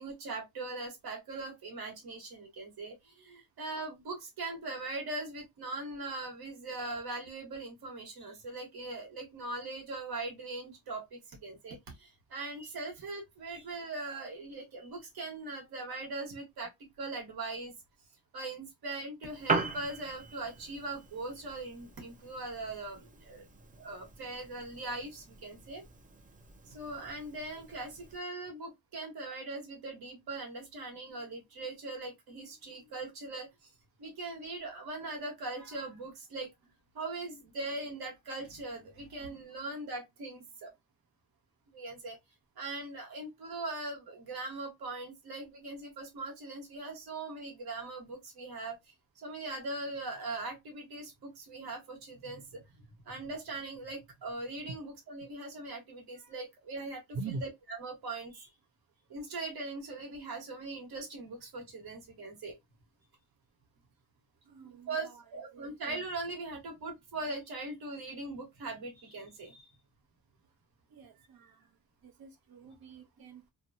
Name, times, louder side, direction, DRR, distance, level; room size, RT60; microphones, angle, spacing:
voice 1, 0.0-16.7 17.0-17.7 18.3-23.4 23.8-25.8 26.6-33.7 34.0-36.5 36.9-40.7 41.7-42.2 42.6-48.9 49.2-58.5 59.1-62.5 64.6-69.7, right 2 dB, 90° right, 1.3 m, -41 dB
Piano, 19.2-28.2, right 4 dB, 20° right, 0.4 m, -40 dB
voice 2, 64.5-65.2 65.5-65.7 70.9-71.7 72.0-73.5, right 3 dB, 70° right, 0.8 m, -44 dB
2.8 x 2.2 x 2.6 m
wide cardioid pair, 140°, 37 cm